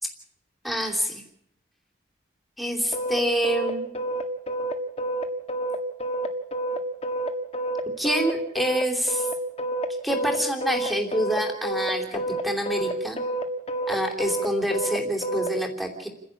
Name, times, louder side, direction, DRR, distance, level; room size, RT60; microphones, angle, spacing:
voice 1, 0.6-1.2 2.6-3.9 8.0-9.3 10.0-13.2 13.9-16.1, equal, ahead, 3 dB, 3.1 m, -27 dB
sound 1, 2.9-15.5, right 1 dB, 30° left, 1.6 m, -28 dB
30.0 x 11.0 x 8.7 m, 0.74 s
head